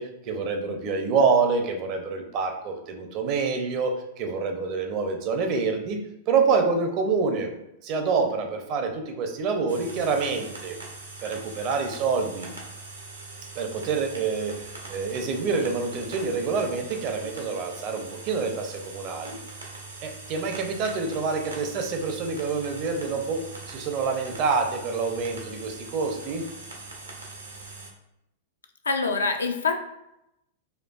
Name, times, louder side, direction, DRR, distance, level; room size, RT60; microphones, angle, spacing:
voice 1, 0.0-6.0 6.3-7.5 7.8-10.8 11.2-12.5 13.6-14.6 14.9-19.4 20.0-23.4 23.7-26.4, right 4 dB, 35° right, 4 dB, 0.5 m, -27 dB
sound 1, 9.7-27.9, right 3 dB, 75° right, 0.7 m, -42 dB
voice 2, 28.9-29.7, left 4 dB, 70° left, 5 dB, 0.4 m, -25 dB
4.4 x 2.3 x 2.3 m, 0.85 s
figure-of-eight pair, 95°, 0 cm